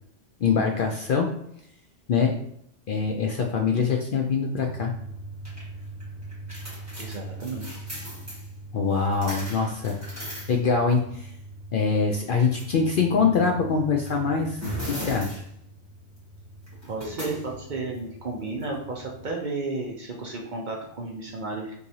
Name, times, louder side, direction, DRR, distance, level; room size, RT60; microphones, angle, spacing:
voice 1, 0.4-1.3 2.1-2.3 2.9-4.9 8.7-10.0 10.5-11.3 11.7-14.6 14.9-15.4, left 5 dB, 60° left, 2 dB, 0.6 m, -24 dB
sound 1, 4.6-19.3, right 1 dB, 15° right, 1.3 m, -39 dB
voice 2, 7.0-7.6 16.8-21.7, right 3 dB, 50° right, -1 dB, 0.7 m, -33 dB
4.5 x 3.2 x 2.7 m, 0.71 s
omnidirectional pair, 1.3 m